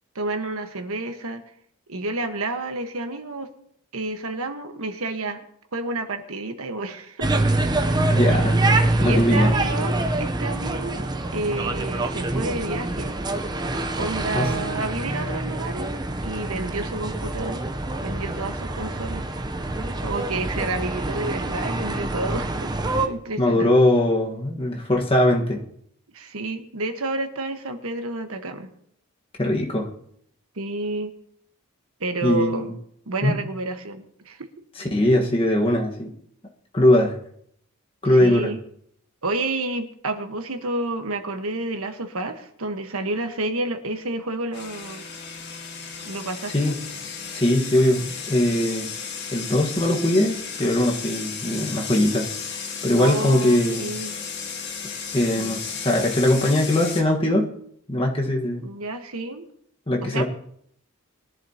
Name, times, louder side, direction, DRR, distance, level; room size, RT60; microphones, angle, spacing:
voice 1, 0.1-1.4 1.9-3.5 3.9-5.4 5.7-7.3 8.3-8.5 9.0-13.2 14.0-17.6 18.0-19.2 20.0-22.7 23.0-23.7 26.1-28.7 30.6-31.1 32.0-32.8 33.1-34.5 38.2-38.6 39.2-45.0 46.0-46.8 53.0-54.1 55.3-55.6 58.6-59.4 60.0-60.2, right 2 dB, 80° right, 7 dB, 1.3 m, -30 dB
sound 1, 7.2-23.1, right 2 dB, 20° right, 0.7 m, -25 dB
voice 2, 8.1-8.6 9.0-9.5 14.3-14.5 23.4-25.6 29.4-29.9 32.2-32.7 33.2-33.4 34.8-36.1 36.7-37.1 38.0-38.5 46.5-46.8 47.3-48.9 49.3-52.3 52.8-53.9 55.1-57.5 57.9-58.6 59.9-60.2, left 1 dB, 25° left, 0 dB, 1.4 m, -21 dB
sound 2, 44.5-57.0, left 6 dB, 50° left, 1.7 m, -34 dB
21.0 x 11.0 x 2.9 m, 0.69 s
head